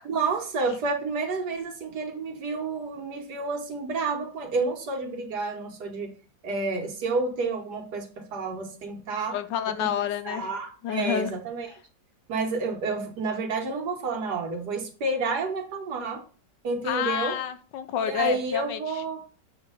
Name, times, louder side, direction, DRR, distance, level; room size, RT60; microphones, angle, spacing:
voice 1, 0.0-6.1 6.4-8.1 8.3-9.3 10.2-11.7 12.3-16.2 16.6-17.3 18.0-19.2, right 3 dB, 65° right, 3 dB, 1.6 m, -29 dB
voice 2, 9.3-10.4 10.8-11.3 16.8-19.0, left 9 dB, 75° left, 10 dB, 1.3 m, -29 dB
7.1 x 2.9 x 5.4 m, 0.40 s
omnidirectional pair, 2.0 m